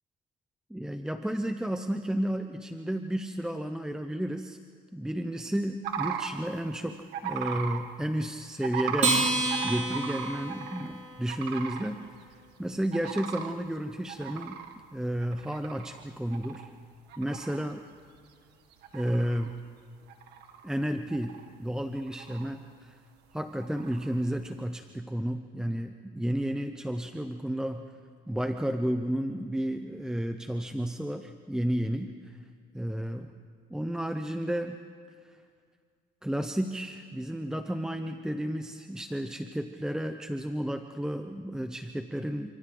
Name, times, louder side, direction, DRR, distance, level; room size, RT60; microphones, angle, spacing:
voice 1, 0.7-4.6 4.9-9.2 9.6-12.0 12.6-14.6 14.9-16.7 17.2-17.8 18.9-19.6 20.6-23.0 23.3-27.9 28.3-32.4 32.7-33.3 33.7-34.8 35.3-35.4 36.2-42.5, equal, 5° right, 7 dB, 0.8 m, -32 dB
sound 1, 5.8-6.3 7.1-7.8 8.6-10.9 11.3-11.9 12.3-12.4 12.9-13.5 14.1-16.0 16.3-16.7 17.1-17.6 18.2-18.3 18.7-19.5 20.1-20.8 21.1-21.7 22.0-22.5 23.6-24.2, right 8 dB, 80° right, 1.9 m, -36 dB
Acoustic guitar, 9.0-11.7, right 2 dB, 45° right, 5.6 m, -30 dB
29.0 x 27.0 x 3.9 m, 2.1 s
cardioid pair, 110°, 17 cm